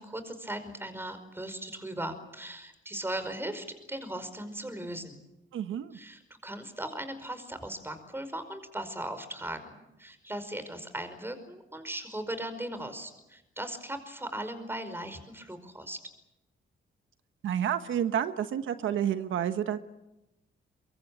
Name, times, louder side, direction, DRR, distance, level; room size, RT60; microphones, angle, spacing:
voice 1, 0.0-5.2 5.9-9.7 10.0-16.0, right 1 dB, 10° right, 10 dB, 5.1 m, -38 dB
voice 2, 5.5-6.0 17.4-19.8, right 9 dB, 80° right, 9 dB, 1.3 m, -29 dB
23.5 x 23.5 x 8.7 m, 0.93 s
cardioid pair, 105°, 20 cm